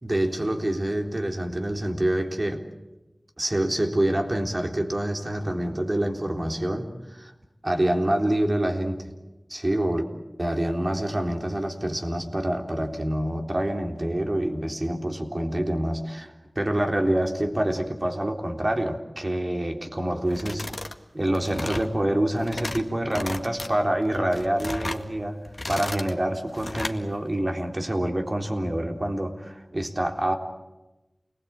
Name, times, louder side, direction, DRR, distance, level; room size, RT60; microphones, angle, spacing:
voice 1, 0.0-2.7 3.4-7.3 7.6-9.1 9.5-10.0 10.4-20.6 21.1-25.4 25.7-30.3, right 1 dB, 40° right, 3 dB, 3.6 m, -26 dB
sound 1, 20.3-21.0 21.3-21.9 22.3-22.8 23.1-23.7 24.1-25.0 25.4-26.1 26.5-27.0, left 2 dB, 45° left, 1.9 m, -34 dB
29.0 x 20.0 x 8.7 m, 1.0 s
wide cardioid pair, 45°, 0 cm